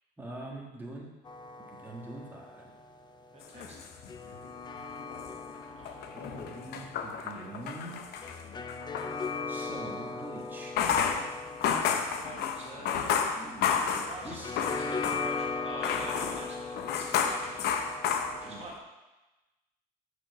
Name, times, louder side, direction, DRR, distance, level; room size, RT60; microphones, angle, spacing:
voice 1, 0.2-1.1 1.7-2.7 6.0-8.0 9.5-10.8 13.4-13.7 14.2-14.6 18.4-18.7, right 2 dB, 10° right, -2 dB, 1.5 m, -44 dB
sound 1, 1.3-18.7, left 4 dB, 25° left, 0.5 m, -40 dB
voice 2, 3.3-3.8 5.7-6.3 11.9-13.2 13.9-17.9 18.3-18.7, right 2 dB, 40° right, -1 dB, 1.3 m, -46 dB
sound 2, 3.4-4.6 5.0-9.1 10.6-15.5 15.8-18.8, left 7 dB, 75° left, 0.7 m, -31 dB
7.3 x 5.0 x 4.8 m, 1.1 s
cardioid pair, 110°, 17 cm